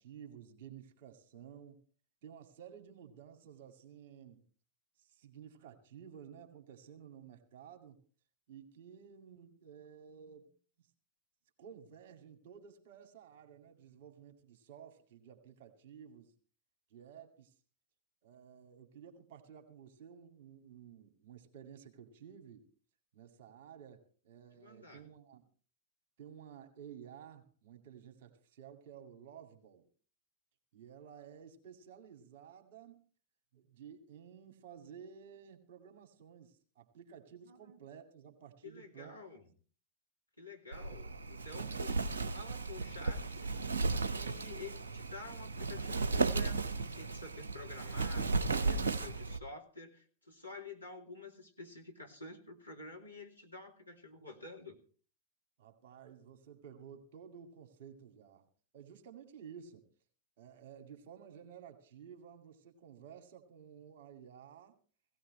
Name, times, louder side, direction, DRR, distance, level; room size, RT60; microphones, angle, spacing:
voice 1, 0.0-1.8 2.2-4.4 5.0-8.0 8.5-10.5 10.8-10.9 11.6-16.3 16.9-17.5 18.2-22.7 23.1-25.4 26.2-29.9 30.7-33.0 33.5-39.2 55.6-58.5 58.7-59.8 60.4-64.8, right 8 dB, 50° right, 6 dB, 2.2 m, -53 dB
voice 2, 24.5-25.1 37.4-37.8 38.6-39.4 40.4-43.5 44.0-54.8, left 3 dB, 90° left, 0 dB, 2.3 m, -50 dB
Wind, 40.7-49.4, right 3 dB, 70° right, 0.9 m, -35 dB
17.0 x 17.0 x 3.2 m, 0.40 s
figure-of-eight pair, 90°, 0 cm